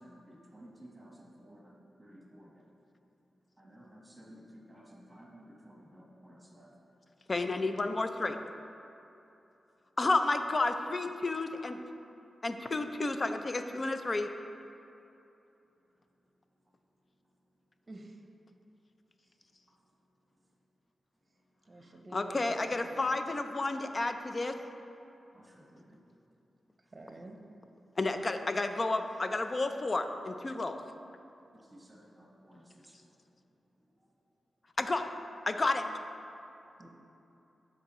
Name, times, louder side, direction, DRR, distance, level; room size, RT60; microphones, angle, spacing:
voice 1, 0.0-1.6 2.0-2.5 3.6-6.7 25.3-26.0 31.7-31.9 32.2-32.6, equal, 15° right, -3 dB, 1.4 m, -54 dB
voice 2, 7.3-8.4 10.0-11.8 12.4-14.3 22.1-24.6 28.0-30.8 34.8-35.1 35.5-35.9, left 2 dB, 40° left, 7 dB, 0.5 m, -31 dB
voice 3, 21.7-22.4 22.8-22.9 26.9-27.4 36.8-36.9, right 2 dB, 35° right, 3 dB, 0.8 m, -49 dB
12.5 x 4.6 x 3.1 m, 2.8 s
cardioid pair, 75°, 0 cm